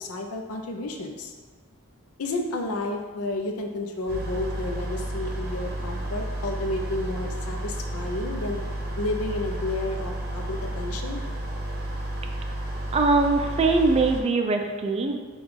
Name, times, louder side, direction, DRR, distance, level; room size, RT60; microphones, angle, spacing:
voice 1, 0.0-1.3 2.2-8.6 9.0-11.2, left 2 dB, 90° left, 4 dB, 0.5 m, -31 dB
sound 1, 4.1-14.2, right 1 dB, 45° right, 0.7 m, -32 dB
voice 2, 12.9-15.2, right 3 dB, 30° right, 4 dB, 0.3 m, -22 dB
5.1 x 2.3 x 3.5 m, 1.5 s
head